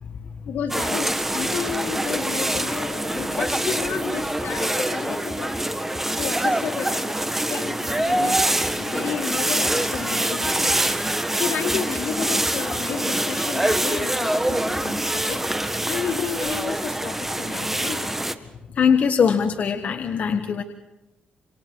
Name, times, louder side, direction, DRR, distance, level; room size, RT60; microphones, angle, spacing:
voice 1, 0.4-5.6 6.2-10.8 11.2-18.1, left 8 dB, 80° left, 1 dB, 3.5 m, -32 dB
sound 1, 0.7-18.3, right 1 dB, 10° right, 1.5 m, -25 dB
voice 2, 18.7-20.6, left 6 dB, 55° left, 5 dB, 1.5 m, -21 dB
27.5 x 27.5 x 4.7 m, 1.0 s
cardioid pair, 100°, 3 cm